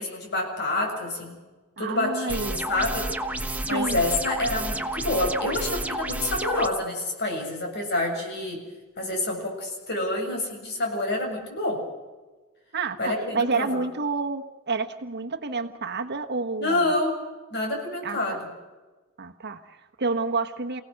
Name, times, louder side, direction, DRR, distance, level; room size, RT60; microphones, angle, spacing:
voice 1, 0.0-1.4 1.8-3.1 3.6-8.6 9.0-11.8 13.0-13.7 16.6-17.2 17.5-18.5, left 2 dB, 50° left, 2 dB, 7.5 m, -27 dB
voice 2, 1.8-2.7 3.7-4.0 12.7-16.9 18.0-18.4 19.2-20.8, right 3 dB, 50° right, 5 dB, 1.4 m, -29 dB
sound 1, 2.3-6.7, right 2 dB, 5° right, 1.2 m, -30 dB
28.5 x 18.0 x 6.6 m, 1.3 s
head